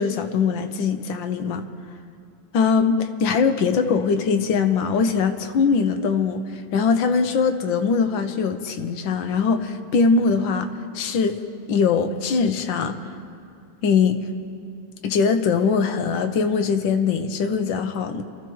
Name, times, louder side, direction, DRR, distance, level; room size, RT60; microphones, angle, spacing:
voice 1, 0.0-1.6 2.5-10.7 10.9-11.4 11.7-13.0 13.8-14.2 15.0-18.2, left 5 dB, 70° left, 7 dB, 1.4 m, -21 dB
28.5 x 13.0 x 3.1 m, 2.5 s
omnidirectional pair, 2.2 m